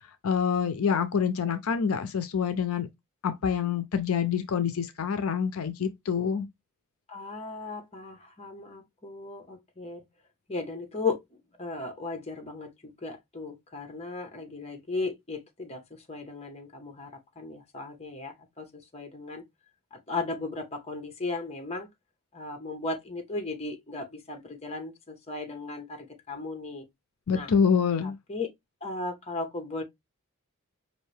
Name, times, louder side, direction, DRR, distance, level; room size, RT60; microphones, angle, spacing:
voice 1, 0.2-2.9 3.2-6.5 27.3-28.2, left 6 dB, 70° left, 0.5 m, -26 dB
voice 2, 7.1-10.0 10.5-11.3 11.6-17.1 17.4-19.4 19.9-21.9 22.3-26.9 27.3-27.5 28.0-28.5 28.8-29.8, left 3 dB, 30° left, 0.9 m, -36 dB
5.4 x 2.6 x 3.2 m
head